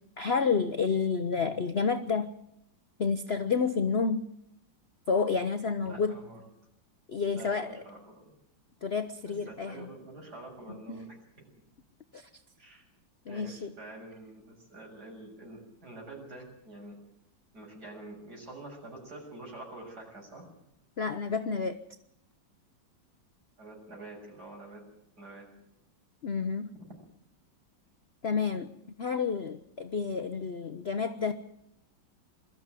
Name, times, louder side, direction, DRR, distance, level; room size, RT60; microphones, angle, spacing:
voice 1, 0.2-2.3 3.0-4.2 5.1-6.2 7.1-7.8 8.8-9.9 10.9-11.1 12.1-12.3 13.3-13.7 21.0-21.8 26.2-26.7 28.2-28.7 29.0-31.3, left 5 dB, 45° left, 9 dB, 0.8 m, -30 dB
voice 2, 5.8-6.4 7.3-8.3 9.2-11.5 12.6-12.8 13.3-17.0 17.5-20.5 23.6-24.8 25.2-25.5, right 2 dB, 55° right, 1 dB, 7.4 m, -47 dB
22.5 x 13.5 x 9.1 m, 0.77 s
omnidirectional pair, 2.1 m